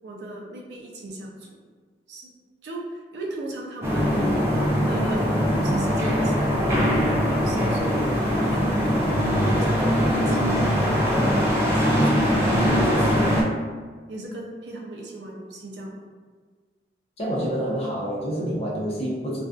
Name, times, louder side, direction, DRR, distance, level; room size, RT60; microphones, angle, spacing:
voice 1, 0.0-1.6 2.1-2.3 2.6-4.2 4.9-6.9 7.2-8.7 9.5-10.7 11.7-13.2 14.1-16.1, right 1 dB, 75° right, -1 dB, 0.5 m, -36 dB
sound 1, 3.8-13.4, equal, 15° right, 0.3 m, -21 dB
voice 2, 17.2-19.4, equal, 35° left, -5 dB, 0.6 m, -27 dB
2.5 x 2.3 x 2.3 m, 1.5 s
head